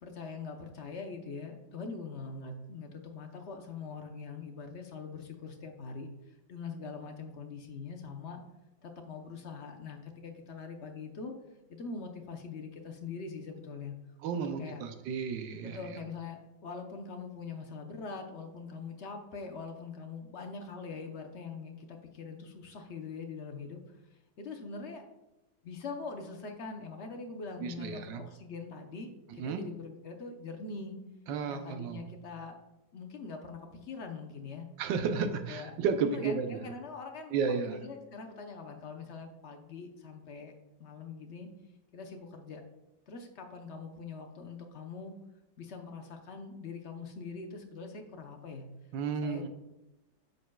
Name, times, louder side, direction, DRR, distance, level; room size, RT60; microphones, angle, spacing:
voice 1, 0.0-6.1 6.5-8.4 8.8-11.3 11.7-13.9 14.3-14.8 15.6-23.8 24.4-25.0 25.6-31.0 31.5-32.6 32.9-34.7 35.1-35.7 36.0-37.4 37.6-40.5 40.8-41.5 41.9-42.6 43.1-45.1 45.6-48.6 49.2-49.5, left 4 dB, 50° left, 3 dB, 0.8 m, -43 dB
voice 2, 14.2-15.8 27.6-28.2 29.4-29.6 31.3-32.1 34.8-36.6 37.3-37.8 48.9-49.5, right 6 dB, 85° right, 8 dB, 1.4 m, -32 dB
10.5 x 7.0 x 2.3 m, 0.95 s
omnidirectional pair, 1.9 m